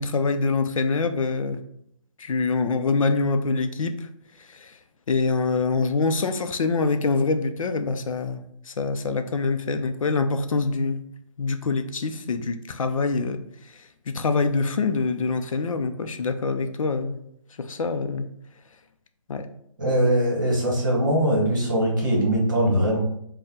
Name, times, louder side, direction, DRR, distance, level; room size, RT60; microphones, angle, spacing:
voice 1, 0.0-1.6 2.2-4.1 4.5-4.7 5.1-11.0 11.4-13.4 14.1-17.2 17.6-18.3 19.3-19.5, left 4 dB, 75° left, 8 dB, 0.4 m, -25 dB
voice 2, 19.8-23.0, right 1 dB, 35° right, -2 dB, 1.0 m, -21 dB
4.2 x 2.1 x 3.5 m, 0.73 s
hypercardioid pair, 180°, 17 cm